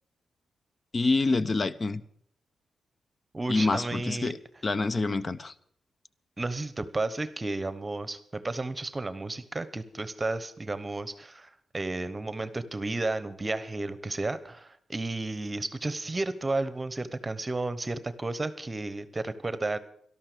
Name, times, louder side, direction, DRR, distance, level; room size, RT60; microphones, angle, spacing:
voice 1, 0.9-2.0 3.5-4.4 4.6-5.5, left 3 dB, 40° left, 16 dB, 0.8 m, -26 dB
voice 2, 3.3-4.3 6.4-19.8, right 2 dB, 25° right, 14 dB, 1.0 m, -32 dB
12.5 x 12.5 x 6.8 m, 0.65 s
cardioid pair, 70°, 0 cm